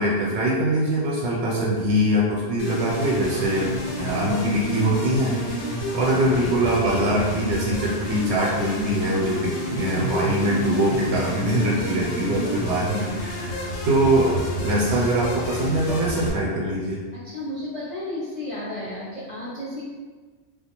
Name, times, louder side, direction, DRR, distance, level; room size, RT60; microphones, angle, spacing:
voice 1, 0.0-5.4 5.7-13.6 13.8-17.0, right 1 dB, 80° right, -4 dB, 0.9 m, -23 dB
sound 1, 2.6-16.3, equal, 80° left, 0.9 m, -30 dB
voice 2, 17.2-19.8, left 1 dB, 40° left, -10 dB, 0.5 m, -33 dB
2.3 x 2.2 x 2.8 m, 1.4 s
omnidirectional pair, 1.2 m